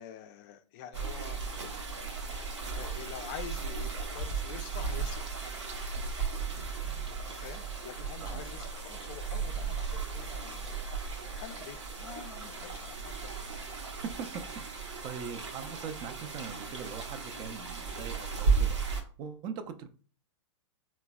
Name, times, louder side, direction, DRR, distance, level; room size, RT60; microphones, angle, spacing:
voice 1, 0.0-1.4 2.3-5.3 7.3-10.9 11.3-13.4, left 9 dB, 40° left, 0.4 m, -46 dB
sound 1, 0.9-19.0, right 5 dB, 75° right, 0.7 m, -35 dB
voice 2, 8.2-8.7 14.0-19.9, right 7 dB, 30° right, 0.3 m, -42 dB
3.8 x 2.0 x 2.2 m
hypercardioid pair, 110°, 15 cm